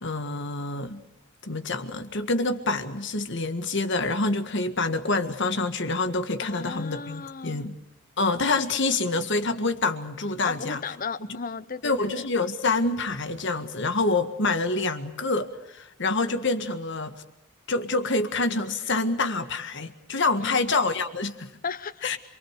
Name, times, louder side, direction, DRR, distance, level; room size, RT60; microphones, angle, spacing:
voice 1, 0.0-1.0 1.4-7.8 8.2-10.8 11.8-17.1 17.7-21.5 22.0-22.2, left 3 dB, 55° left, 1.8 m, -27 dB
voice 2, 6.4-7.7 10.4-12.2 20.4-20.6 21.6-22.1, left 5 dB, 40° left, 0.9 m, -35 dB
27.5 x 23.0 x 6.6 m
head